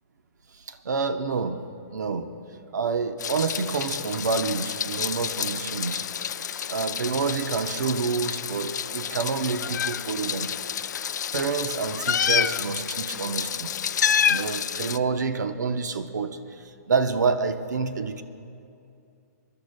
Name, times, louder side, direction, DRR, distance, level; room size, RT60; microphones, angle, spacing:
voice 1, 0.5-1.6 1.9-6.1 6.7-10.5 11.3-13.7 14.3-18.2, right 5 dB, 85° right, 9 dB, 0.8 m, -28 dB
Meow, 3.2-15.0, left 8 dB, 85° left, 0.4 m, -29 dB
29.0 x 11.5 x 2.2 m, 2.5 s
hypercardioid pair, 170°, 9 cm